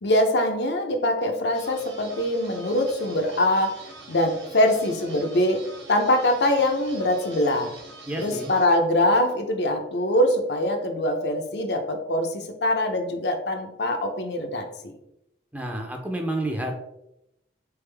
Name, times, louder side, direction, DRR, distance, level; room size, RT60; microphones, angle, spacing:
voice 1, 0.0-3.8 4.1-5.6 5.9-7.8 8.2-14.9, left 1 dB, 75° left, 4 dB, 0.6 m, -23 dB
sound 1, 1.5-8.7, right 2 dB, 90° right, 1.1 m, -44 dB
voice 2, 8.1-8.5 15.5-16.7, right 1 dB, 10° right, 2 dB, 0.5 m, -29 dB
3.8 x 3.5 x 3.3 m, 0.85 s
head